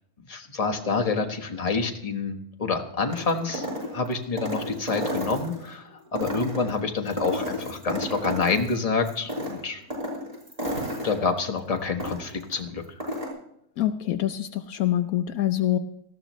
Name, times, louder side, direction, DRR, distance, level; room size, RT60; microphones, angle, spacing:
voice 1, 0.3-3.7 3.9-9.8 11.0-12.8, left 4 dB, 25° left, 4 dB, 1.3 m, -27 dB
sound 1, 3.1-5.7 6.1-8.8 9.1-12.5 12.8-13.3, equal, 25° right, 5.4 m, -32 dB
voice 2, 13.8-15.8, left 12 dB, 75° left, 9 dB, 1.1 m, -25 dB
18.5 x 14.0 x 3.1 m, 0.73 s
omnidirectional pair, 1.6 m